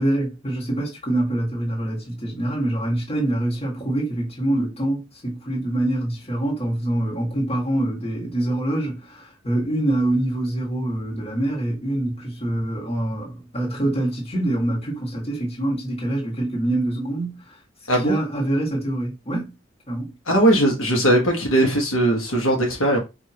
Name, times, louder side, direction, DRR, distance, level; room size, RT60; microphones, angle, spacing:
voice 1, 0.0-17.6 18.0-19.5 19.9-20.1, right 1 dB, 30° left, 1.8 m, -25 dB
voice 2, 20.3-23.0, right 1 dB, 85° left, 1.3 m, -19 dB
4.8 x 2.8 x 2.9 m
head